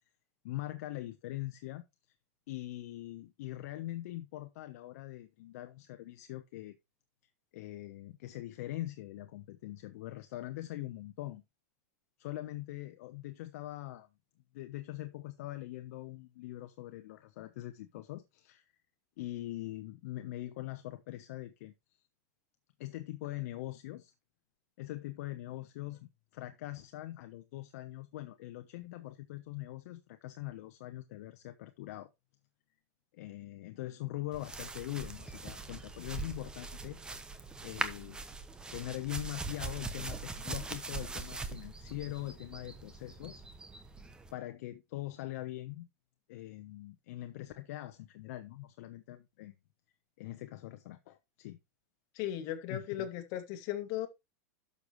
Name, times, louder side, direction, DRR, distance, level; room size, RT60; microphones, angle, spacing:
voice 1, 0.4-1.8 2.5-6.8 7.5-11.4 12.2-14.1 14.5-18.7 19.2-21.7 22.8-24.1 24.8-32.1 33.1-37.0 37.6-38.2 38.7-43.4 44.3-45.9 46.3-49.6 50.2-51.6 52.7-53.1, left 16 dB, 60° left, 1.0 m, -42 dB
sound 1, 34.3-44.3, right 3 dB, 10° right, 1.0 m, -42 dB
voice 2, 52.2-54.1, left 12 dB, 40° left, 2.2 m, -37 dB
12.0 x 6.8 x 3.1 m
supercardioid pair, 155°, 9 cm